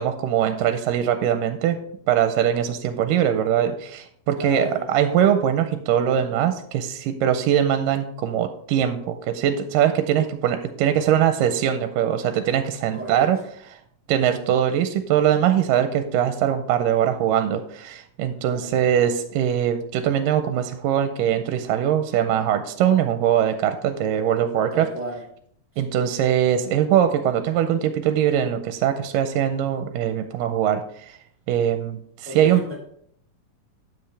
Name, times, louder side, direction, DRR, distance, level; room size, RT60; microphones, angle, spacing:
voice 1, 0.0-1.8 2.1-13.4 13.7-13.8 14.1-24.9 25.8-31.2 31.5-32.6, right 10 dB, 80° right, 8 dB, 2.1 m, -22 dB
voice 2, 4.4-4.9 12.9-13.3 18.4-18.8 24.7-25.2 25.9-26.1 32.3-32.8, equal, 5° right, -3 dB, 1.8 m, -34 dB
9.2 x 7.6 x 3.3 m, 0.65 s
omnidirectional pair, 4.0 m